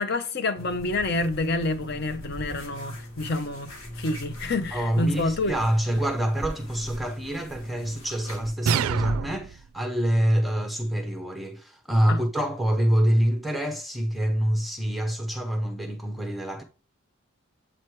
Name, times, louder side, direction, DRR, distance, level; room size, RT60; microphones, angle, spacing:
voice 1, 0.0-5.6 12.1-12.2, left 2 dB, 50° left, 0.7 m, -28 dB
sound 1, 0.6-8.5, equal, 80° left, 1.7 m, -41 dB
voice 2, 4.7-16.6, equal, ahead, 0.6 m, -26 dB
sound 2, 8.7-9.7, right 7 dB, 80° right, 0.3 m, -26 dB
7.7 x 3.0 x 4.6 m
head